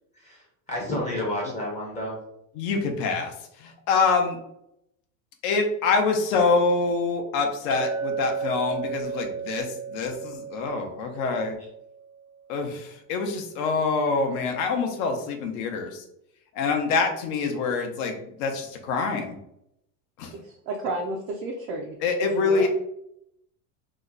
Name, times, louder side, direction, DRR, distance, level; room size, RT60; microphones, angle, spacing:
voice 1, 0.1-2.2, left 1 dB, 15° left, -3 dB, 0.7 m, -31 dB
voice 2, 2.6-3.3 3.9-4.4 5.4-11.6 12.5-16.0 16.5-19.4 20.2-20.3 22.0-22.7, left 4 dB, 55° left, 5 dB, 0.8 m, -25 dB
Chink clink, 7.7-12.2, right 6 dB, 80° right, 1.0 m, -33 dB
voice 3, 20.7-22.0 22.4-22.7, right 2 dB, 40° right, 1 dB, 0.4 m, -31 dB
3.0 x 2.1 x 3.7 m, 0.78 s
supercardioid pair, 140°, 44 cm